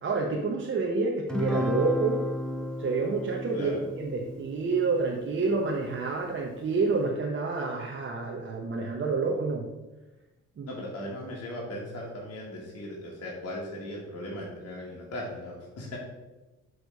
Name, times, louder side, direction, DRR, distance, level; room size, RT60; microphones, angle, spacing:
voice 1, 0.0-2.2 2.8-9.6 10.6-10.7, right 4 dB, 40° right, -1 dB, 0.9 m, -28 dB
Guitar, 1.3-5.9, left 1 dB, 5° left, 1.0 m, -34 dB
voice 2, 10.7-16.0, left 1 dB, 55° left, -3 dB, 1.6 m, -38 dB
6.3 x 3.2 x 5.3 m, 1.1 s
cardioid pair, 90°, 30 cm